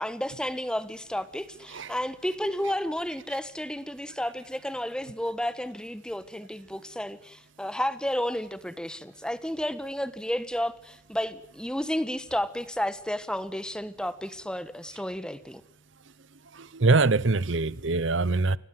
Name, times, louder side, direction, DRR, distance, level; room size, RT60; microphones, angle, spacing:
voice 1, 0.0-15.6, equal, 5° left, 1.3 m, -32 dB
voice 2, 16.5-18.6, right 3 dB, 70° right, 0.9 m, -23 dB
26.5 x 17.5 x 7.7 m
head